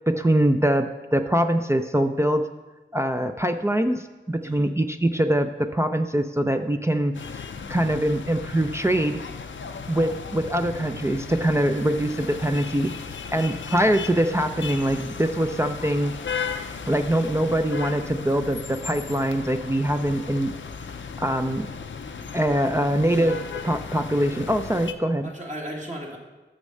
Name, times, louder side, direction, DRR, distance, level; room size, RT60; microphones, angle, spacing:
voice 1, 0.1-2.5 2.9-7.1 7.7-9.2 9.9-12.9 13.3-16.1 16.9-20.5 21.2-21.7 22.3-23.4 23.6-25.3, right 1 dB, 15° right, 6 dB, 0.4 m, -23 dB
sound 1, 7.1-24.9, left 6 dB, 75° left, 0.5 m, -36 dB
voice 2, 23.1-23.4 25.2-26.2, right 1 dB, 40° right, -2 dB, 1.8 m, -36 dB
6.4 x 5.3 x 6.5 m, 1.2 s
cardioid pair, 40°, 20 cm